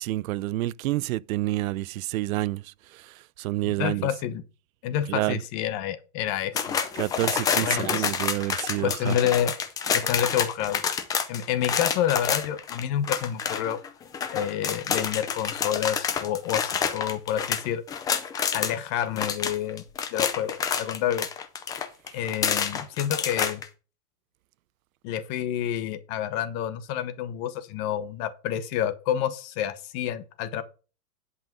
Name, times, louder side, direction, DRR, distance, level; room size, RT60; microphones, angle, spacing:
voice 1, 0.0-2.6 3.4-4.1 5.1-5.4 7.0-9.2, right 17 dB, 65° right, 0.6 m, -28 dB
voice 2, 3.6-4.4 4.8-6.6 7.6-8.1 8.8-9.5 9.9-10.8 11.3-13.8 14.3-17.8 18.5-19.8 20.1-21.3 22.1-23.6 25.0-30.6, left 10 dB, 35° left, 1.2 m, -28 dB
sound 1, 6.6-18.8 19.0-23.7, left 7 dB, 10° left, 0.4 m, -28 dB
10.5 x 5.7 x 5.3 m
hypercardioid pair, 140°, 46 cm